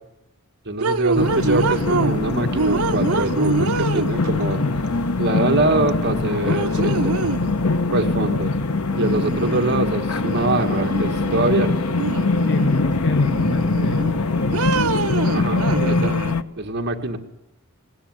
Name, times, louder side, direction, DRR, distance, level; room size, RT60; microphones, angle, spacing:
voice 1, 0.7-4.7 5.2-7.1 7.9-8.5 9.0-11.7 15.3-16.1 16.6-17.2, right 2 dB, 50° right, 5 dB, 1.9 m, -24 dB
sound 1, 0.8-2.2 2.6-4.5 5.9-6.0 6.4-7.6 8.9-9.9 10.2-11.5 12.0-12.8 13.2-14.1 14.5-16.3, right 4 dB, 75° right, 0.8 m, -26 dB
sound 2, 1.1-16.4, left 3 dB, 90° left, 1.1 m, -22 dB
voice 2, 12.4-14.7, left 2 dB, 55° left, 10 dB, 0.9 m, -31 dB
21.0 x 18.0 x 9.6 m, 0.90 s
head